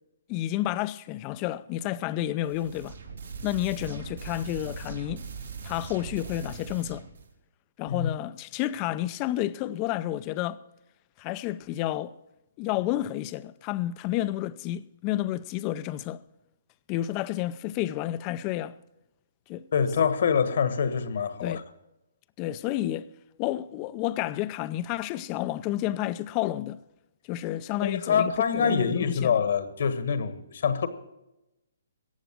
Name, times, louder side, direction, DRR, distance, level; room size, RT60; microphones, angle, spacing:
voice 1, 0.3-3.0 3.4-5.2 5.6-7.0 7.8-10.6 11.2-12.1 12.6-16.2 16.9-18.7 19.5-19.6 21.4-21.6 22.4-23.1 23.4-26.8 27.3-29.4, left 14 dB, 30° left, 0.5 m, -30 dB
sound 1, 2.4-7.3, right 5 dB, 80° right, 3.1 m, -40 dB
voice 2, 19.7-21.6 27.8-30.9, left 6 dB, 60° left, 1.5 m, -25 dB
14.5 x 9.0 x 7.4 m
hypercardioid pair, 145°, 0 cm